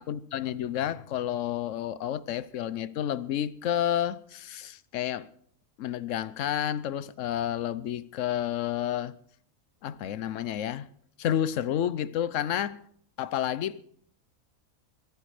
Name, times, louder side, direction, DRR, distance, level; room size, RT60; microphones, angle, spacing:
voice 1, 0.0-5.3 5.8-9.1 9.8-10.9 11.2-12.8 13.2-13.8, left 10 dB, 65° left, 1.0 m, -30 dB
22.0 x 9.4 x 4.9 m
omnidirectional pair, 1.5 m